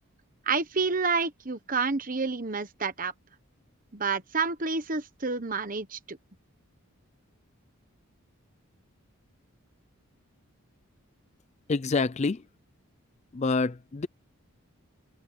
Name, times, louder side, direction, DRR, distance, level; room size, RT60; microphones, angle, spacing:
voice 1, 0.5-3.1 3.9-6.2, right 4 dB, 40° right, 1.2 m, -29 dB
voice 2, 11.7-12.4 13.4-14.1, left 3 dB, 30° left, 0.4 m, -26 dB
head